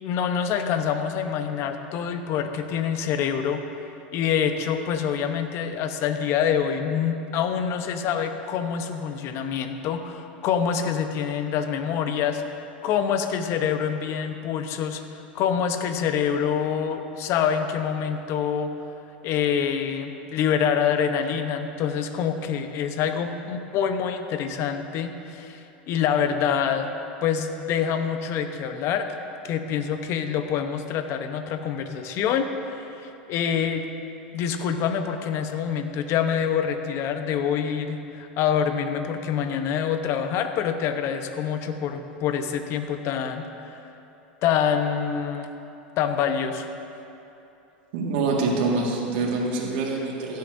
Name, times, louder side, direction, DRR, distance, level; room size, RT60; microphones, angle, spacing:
voice 1, 0.0-3.6 4.1-12.4 12.8-15.0 15.3-18.7 19.2-26.9 27.2-29.1 29.4-33.8 34.3-43.8 44.4-45.5 46.0-46.7, left 8 dB, 50° left, 7 dB, 0.9 m, -26 dB
voice 2, 47.9-50.4, right 3 dB, 70° right, -3 dB, 1.9 m, -25 dB
16.5 x 10.5 x 2.7 m, 2.9 s
hypercardioid pair, 100°, 6 cm